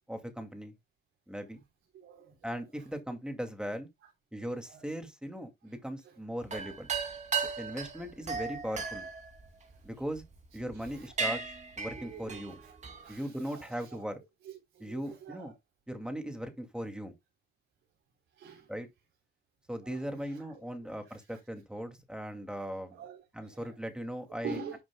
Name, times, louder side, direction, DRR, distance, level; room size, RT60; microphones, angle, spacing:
voice 1, 0.1-0.7 1.3-1.6 2.4-3.9 4.3-6.9 7.6-9.1 9.8-10.2 10.5-11.4 11.8-12.6 13.1-14.2 14.8-15.5 15.9-17.1 18.7-18.9 19.7-23.0 23.3-24.8, equal, 5° right, 2.2 m, -38 dB
voice 2, 1.9-2.9 4.0-4.1 4.7-4.8 5.7-5.8 6.0-6.2 9.7-9.8 10.7-11.2 11.9-14.0 14.4-15.5 18.3-18.7 19.8-21.4 22.9-23.7 24.4-24.8, right 5 dB, 80° right, 3.4 m, -47 dB
sound 1, 6.4-10.2 10.7-10.9 11.2-13.1, right 5 dB, 35° right, 2.5 m, -36 dB
11.0 x 7.4 x 2.2 m
cardioid pair, 90°, 20 cm